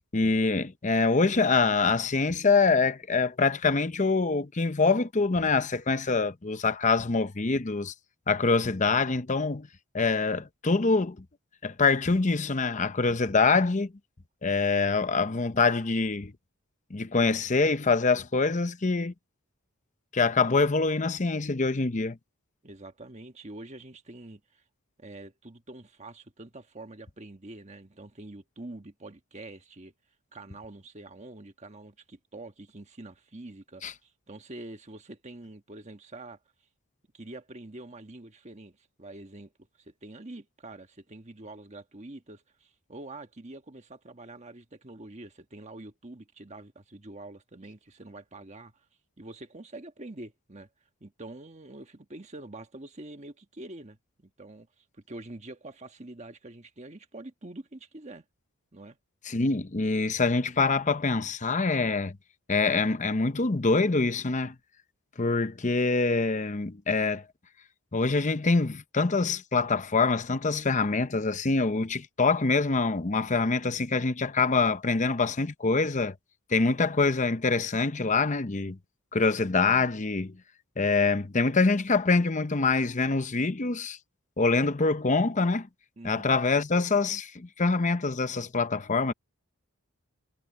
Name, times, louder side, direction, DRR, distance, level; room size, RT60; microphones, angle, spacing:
voice 1, 0.1-7.9 8.3-9.7 9.9-11.2 11.6-13.9 14.4-16.3 16.9-19.1 20.1-22.2 33.8-33.9 59.3-62.2 62.5-64.5 65.2-67.2 67.9-76.1 76.5-78.8 79.1-80.4 80.8-84.0 84.4-85.7 86.0-89.1, left 4 dB, 35° left, 0.7 m, -25 dB
voice 2, 22.6-24.6 25.0-29.9 30.3-36.4 37.1-39.5 39.8-48.9 49.2-50.7 51.0-58.2 58.7-59.0 86.0-86.3, right 2 dB, 30° right, 1.4 m, -45 dB
head